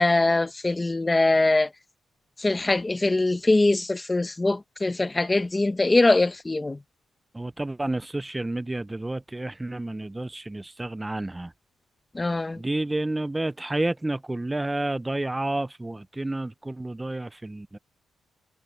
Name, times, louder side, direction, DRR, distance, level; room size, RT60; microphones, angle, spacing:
voice 1, 0.0-1.7 2.4-6.8 12.1-12.6, left 2 dB, 15° left, 1.1 m, -22 dB
voice 2, 7.3-11.5 12.6-17.8, right 2 dB, 10° right, 0.7 m, -30 dB
cardioid pair, 140°, 0 cm